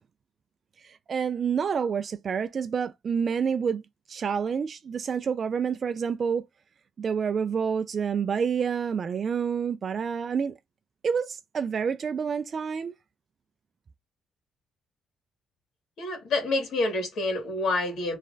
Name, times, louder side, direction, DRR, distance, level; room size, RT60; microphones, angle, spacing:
voice 1, 0.8-3.8 4.1-6.4 7.0-10.5 11.0-12.9, right 6 dB, 50° right, 0.4 m, -28 dB
voice 2, 16.0-18.2, left 2 dB, 70° left, 2.3 m, -27 dB
3.3 x 3.3 x 3.8 m
cardioid pair, 90°, 0 cm